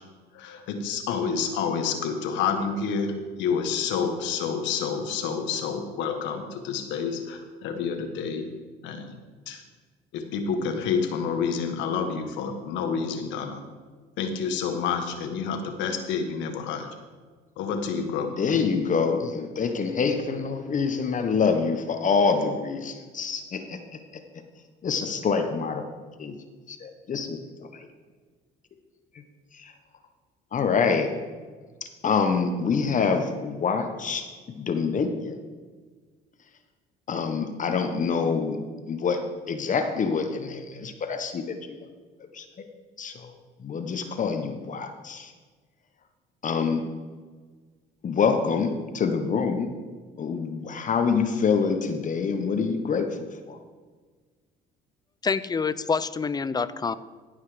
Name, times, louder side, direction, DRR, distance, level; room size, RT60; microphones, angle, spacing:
voice 1, 0.3-3.1 3.4-8.5 8.8-9.2 9.5-9.6 10.1-13.6 14.2-16.9 17.6-18.4, left 6 dB, 80° left, 6 dB, 1.4 m, -28 dB
voice 2, 18.4-23.8 24.8-25.8 26.2-26.3 26.7-27.4 27.7-27.9 29.5-29.7 30.5-31.1 32.0-34.3 34.6-35.4 37.1-38.6 38.9-41.8 42.3-42.7 43.0-43.3 43.6-45.3 46.4-46.9 48.0-49.7 50.2-53.1 53.5-53.6, left 5 dB, 45° left, 6 dB, 1.2 m, -26 dB
voice 3, 55.2-56.9, left 5 dB, 20° left, 15 dB, 0.5 m, -26 dB
16.0 x 5.6 x 5.0 m, 1.4 s
supercardioid pair, 80°, 19 cm